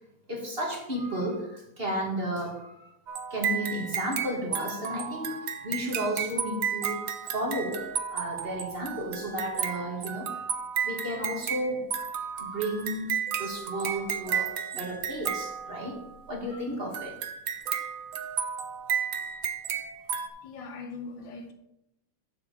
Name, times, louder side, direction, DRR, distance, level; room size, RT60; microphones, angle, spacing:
voice 1, 0.3-2.9 3.3-7.8 8.1-10.3 10.8-11.9 12.4-16.0 16.3-17.1, equal, 30° right, 2.0 m, -33 dB
sound 1, 3.1-16.2 16.9-20.3, right 8 dB, 60° right, 0.9 m, -33 dB
voice 2, 20.4-21.5, left 4 dB, 70° left, 1.5 m, -40 dB
7.5 x 6.0 x 6.7 m
omnidirectional pair, 2.3 m